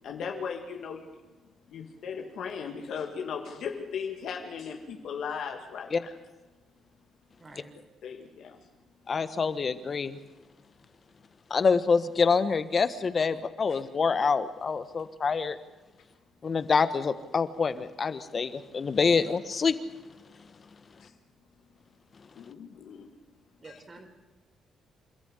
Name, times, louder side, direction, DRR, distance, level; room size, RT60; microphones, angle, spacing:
voice 1, 0.0-1.1 1.7-6.1 8.0-8.6 13.7-13.8 21.0-21.1 22.3-23.1 23.6-23.7, left 6 dB, 70° left, 3 dB, 2.2 m, -37 dB
voice 2, 7.4-7.7 23.6-24.1, right 3 dB, 30° right, 6 dB, 4.1 m, -48 dB
voice 3, 9.1-10.2 11.5-15.6 16.4-19.7, left 5 dB, 40° left, 12 dB, 1.3 m, -26 dB
28.0 x 13.5 x 8.2 m, 1.2 s
cardioid pair, 90°, 0 cm